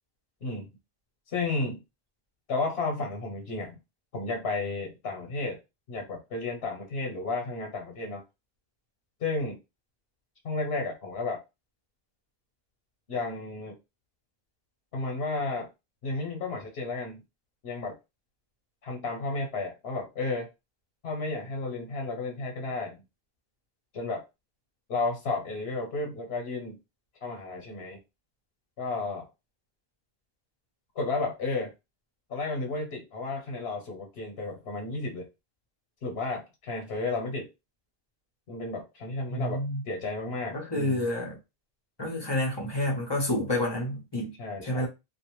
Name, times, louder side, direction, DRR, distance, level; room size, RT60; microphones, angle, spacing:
voice 1, 1.3-1.8 2.5-3.8 4.1-5.6 5.9-8.2 9.2-9.6 10.4-11.4 13.1-13.7 14.9-15.7 16.0-17.2 17.6-18.0 18.8-20.5 21.0-23.0 23.9-24.2 24.9-26.8 27.2-28.0 28.8-29.3 30.9-31.7 32.3-35.3 36.0-37.5 38.5-41.1 44.4-44.9, left 3 dB, 90° left, 1.0 m, -32 dB
voice 2, 39.3-39.8 40.5-41.4 42.0-44.3 44.6-44.9, left 1 dB, 30° left, 0.7 m, -29 dB
2.4 x 2.1 x 3.0 m
omnidirectional pair, 1.0 m